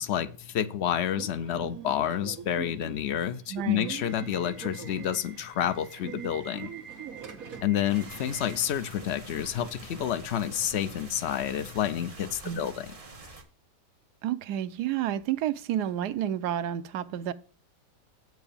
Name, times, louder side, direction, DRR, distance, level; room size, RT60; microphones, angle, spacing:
voice 1, 0.0-6.7 7.6-12.9, left 10 dB, 70° left, 0.6 m, -29 dB
Subway metro underground / Alarm, 1.1-10.9, right 8 dB, 60° right, 1.6 m, -44 dB
voice 2, 3.5-3.9 12.4-12.6 14.2-17.3, right 11 dB, 80° right, 1.2 m, -30 dB
sound 1, 7.9-13.4, right 2 dB, 25° right, 1.2 m, -47 dB
7.8 x 4.7 x 6.9 m
omnidirectional pair, 1.7 m